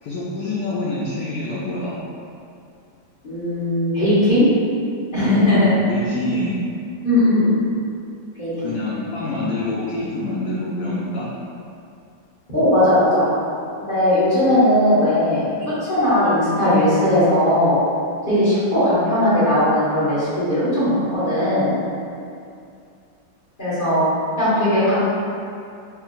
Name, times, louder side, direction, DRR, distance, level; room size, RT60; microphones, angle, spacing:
voice 1, 0.0-2.0 5.3-6.6 8.6-11.3 22.1-22.2, left 2 dB, 85° left, -6 dB, 0.8 m, -26 dB
voice 2, 3.2-4.4 5.1-5.7 7.0-7.5 8.4-8.7 12.5-13.2 13.8-15.4 15.9-17.7 18.3-21.7 23.6-24.0 24.4-25.0, left 1 dB, 25° left, -14 dB, 1.4 m, -18 dB
4.7 x 2.9 x 2.5 m, 2.5 s
omnidirectional pair, 2.2 m